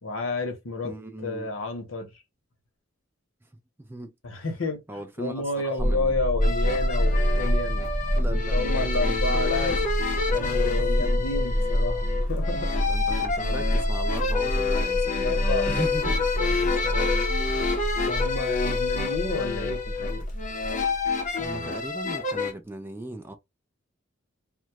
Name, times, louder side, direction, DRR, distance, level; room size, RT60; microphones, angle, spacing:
voice 1, 0.0-0.9 1.2-2.1 4.2-4.8 5.2-7.8 8.2-9.8 10.3-12.7 14.7-14.9 15.2-15.8 16.3-17.1 18.1-20.2, left 3 dB, 80° left, 0.8 m, -30 dB
voice 2, 0.8-1.5 3.8-4.4 4.9-6.1 8.1-9.5 10.8-11.1 12.9-15.4 15.7-16.3 18.2-18.4 19.0-19.5 21.4-23.4, right 1 dB, 10° right, 0.4 m, -38 dB
sound 1, 5.8-21.5, equal, 25° right, 0.8 m, -27 dB
sound 2, 6.4-22.5, left 4 dB, 40° left, 0.6 m, -29 dB
2.2 x 2.0 x 2.8 m
head